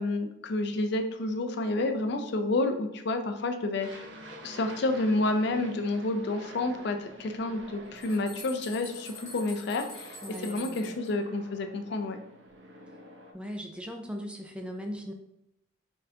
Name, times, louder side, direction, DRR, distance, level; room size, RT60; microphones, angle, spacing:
voice 1, 0.0-4.1 4.4-10.2 10.4-12.2, left 2 dB, 60° left, 6 dB, 0.4 m, -29 dB
Aircraft, 3.8-13.3, right 1 dB, 65° right, 0.7 m, -48 dB
sound 1, 7.6-11.1, left 2 dB, 15° left, 1.5 m, -46 dB
voice 2, 10.2-11.0 13.3-15.1, equal, 5° right, 3 dB, 0.3 m, -39 dB
4.1 x 3.8 x 2.7 m, 0.82 s
head